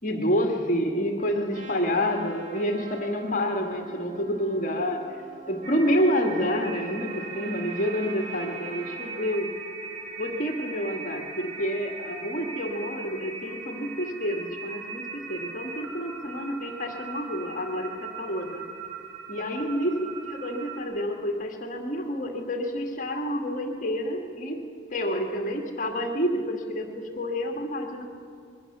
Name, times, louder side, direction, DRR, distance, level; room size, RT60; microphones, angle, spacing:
voice 1, 0.0-5.0 5.5-9.5 10.2-18.7 19.3-20.0 20.3-24.6 24.9-28.0, equal, 40° left, 3 dB, 2.0 m, -28 dB
Trumpet, 1.5-9.4, right 3 dB, 40° right, 1.7 m, -46 dB
sound 1, 5.6-20.8, right 5 dB, 70° right, 3.8 m, -39 dB
25.0 x 22.0 x 6.8 m, 2.5 s
head